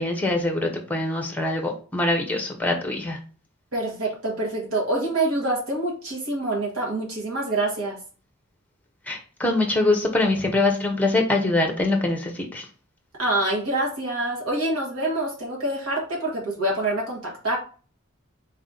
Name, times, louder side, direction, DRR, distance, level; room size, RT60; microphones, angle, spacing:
voice 1, 0.0-3.2 9.1-12.6, left 2 dB, 5° left, 3 dB, 0.7 m, -23 dB
voice 2, 3.7-8.0 13.2-17.6, right 2 dB, 80° right, -3 dB, 1.4 m, -26 dB
4.2 x 2.6 x 3.7 m, 0.40 s
head